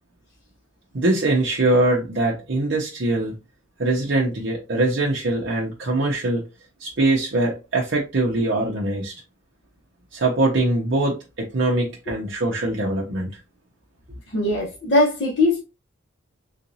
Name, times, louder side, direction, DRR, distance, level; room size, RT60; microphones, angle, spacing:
voice 1, 0.9-3.4 3.8-6.4 6.8-9.1 10.1-13.3, right 2 dB, 55° right, 0.7 m, -22 dB
voice 2, 14.3-15.6, left 2 dB, 55° left, 1.1 m, -20 dB
3.8 x 2.5 x 2.7 m
head